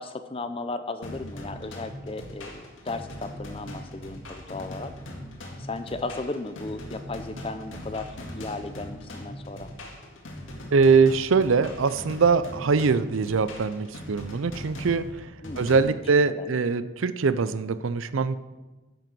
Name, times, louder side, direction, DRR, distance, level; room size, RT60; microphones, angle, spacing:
voice 1, 0.0-4.9 5.6-9.7 15.4-16.0 16.4-16.5, left 3 dB, 25° left, 10 dB, 0.5 m, -35 dB
sound 1, 1.0-15.8, left 1 dB, 70° left, 2.0 m, -40 dB
voice 2, 10.7-15.0 15.6-18.4, right 5 dB, 75° right, 14 dB, 0.5 m, -22 dB
10.5 x 7.6 x 6.1 m, 1.2 s
head